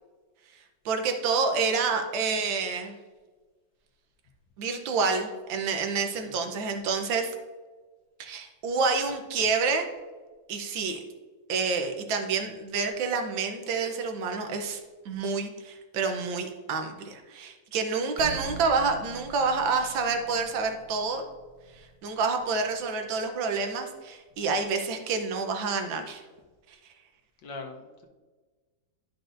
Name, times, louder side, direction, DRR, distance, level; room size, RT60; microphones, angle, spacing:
voice 1, 0.8-2.9 4.6-7.3 8.2-9.9 10.5-11.0 11.5-14.8 15.0-21.2 22.0-26.2, right 4 dB, 80° right, 5 dB, 1.6 m, -28 dB
Percussion, 18.2-23.0, right 4 dB, 15° left, 1.3 m, -44 dB
voice 2, 27.4-28.1, left 3 dB, 75° left, 2 dB, 1.6 m, -42 dB
12.0 x 5.3 x 2.6 m, 1.3 s
omnidirectional pair, 2.1 m